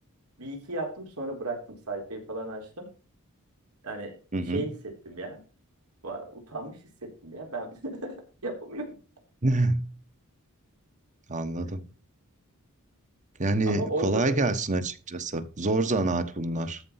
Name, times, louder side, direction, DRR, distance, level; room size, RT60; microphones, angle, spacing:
voice 1, 0.4-2.9 3.8-4.1 4.4-5.4 6.0-8.2 8.4-8.9 13.7-14.4, right 2 dB, 80° right, 4.0 m, -35 dB
voice 2, 4.3-4.7 9.4-9.9 11.3-11.8 13.4-16.8, right 2 dB, 35° right, 1.2 m, -27 dB
13.5 x 5.4 x 5.7 m
head